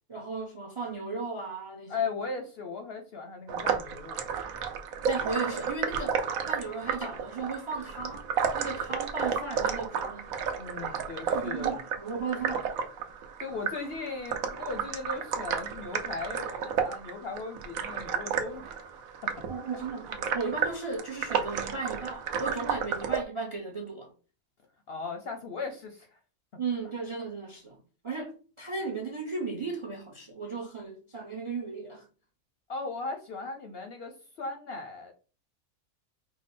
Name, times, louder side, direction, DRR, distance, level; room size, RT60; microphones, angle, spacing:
voice 1, 0.0-2.0 5.0-8.3 8.5-10.3 11.3-12.8 19.5-24.1 26.6-27.8 28.0-32.1, right 4 dB, 35° right, 0.5 m, -36 dB
voice 2, 1.9-4.2 10.5-11.8 13.4-18.9 19.2-19.3 24.9-26.2 32.7-35.1, left 4 dB, 60° left, 0.7 m, -37 dB
sound 1, 3.5-23.2, right 7 dB, 75° right, 1.1 m, -32 dB
4.9 x 2.1 x 4.2 m
omnidirectional pair, 1.5 m